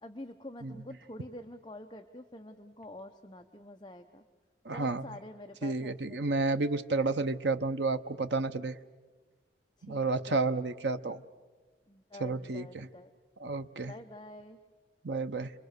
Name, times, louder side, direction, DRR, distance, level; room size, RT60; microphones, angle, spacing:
voice 1, 0.0-4.2 4.7-6.2 9.8-10.5 11.9-13.1 13.8-14.6, left 1 dB, 25° left, 5 dB, 0.8 m, -47 dB
voice 2, 4.6-5.0 5.6-8.8 9.8-11.2 12.2-12.9 13.4-13.9 15.0-15.5, right 3 dB, 85° right, 9 dB, 0.9 m, -31 dB
29.5 x 23.0 x 6.7 m, 1.3 s
head